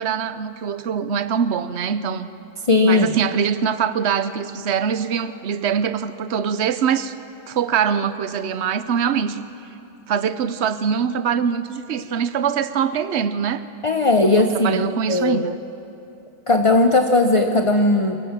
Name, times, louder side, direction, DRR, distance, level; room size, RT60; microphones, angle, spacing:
voice 1, 0.0-2.3 2.8-7.1 7.5-9.4 10.1-13.6 14.4-15.6, right 7 dB, 50° right, 13 dB, 0.9 m, -23 dB
voice 2, 2.7-3.1 13.8-15.4 16.5-18.2, left 2 dB, 30° left, 5 dB, 0.6 m, -17 dB
24.5 x 22.0 x 7.4 m, 2.8 s
omnidirectional pair, 1.7 m